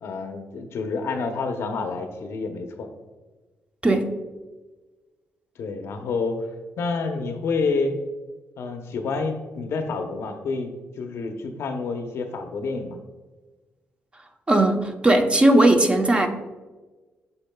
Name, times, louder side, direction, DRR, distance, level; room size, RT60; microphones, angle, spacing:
voice 1, 0.0-2.9 5.6-6.5 6.8-7.9 8.6-13.0, left 4 dB, 70° left, 6 dB, 0.8 m, -28 dB
voice 2, 14.5-16.3, right 1 dB, 20° right, 4 dB, 0.8 m, -18 dB
12.0 x 4.1 x 2.3 m, 1.3 s
cardioid pair, 80°, 5 cm